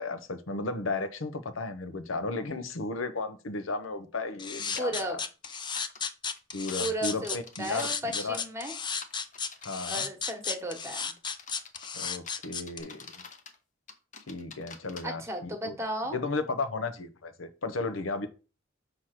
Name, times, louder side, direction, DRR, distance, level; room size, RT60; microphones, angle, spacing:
voice 1, 0.0-5.2 6.5-8.4 9.6-10.1 11.9-13.1 14.3-15.8 16.1-18.3, left 3 dB, 85° left, 0.8 m, -34 dB
sound 1, 4.4-12.8, left 6 dB, 25° left, 0.5 m, -34 dB
sound 2, 4.8-5.0 5.4-7.9 8.9-9.7 10.3-10.6 11.2-13.6 13.9-15.0, left 5 dB, 40° left, 0.8 m, -47 dB
voice 2, 4.8-5.2 6.8-8.7 9.9-11.1 15.0-16.2, right 1 dB, 15° right, 1.2 m, -34 dB
6.4 x 3.0 x 5.8 m
head